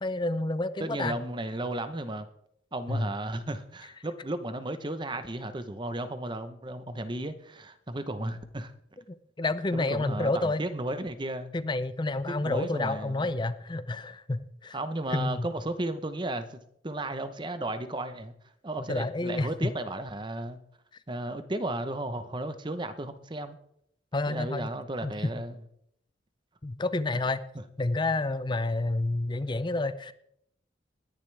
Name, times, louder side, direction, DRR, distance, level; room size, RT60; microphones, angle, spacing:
voice 1, 0.0-1.2 2.9-3.1 9.4-10.6 11.5-14.8 15.1-15.5 18.9-19.5 24.1-24.7 25.0-25.1 26.6-27.5 27.8-30.1, left 2 dB, 25° left, 13 dB, 0.5 m, -29 dB
voice 2, 0.8-2.3 2.7-8.7 9.7-11.5 12.4-13.3 14.7-16.6 16.8-18.3 18.6-20.6 21.1-23.6 24.3-25.6, right 1 dB, 25° right, 10 dB, 0.8 m, -34 dB
20.0 x 10.5 x 3.4 m, 0.73 s
head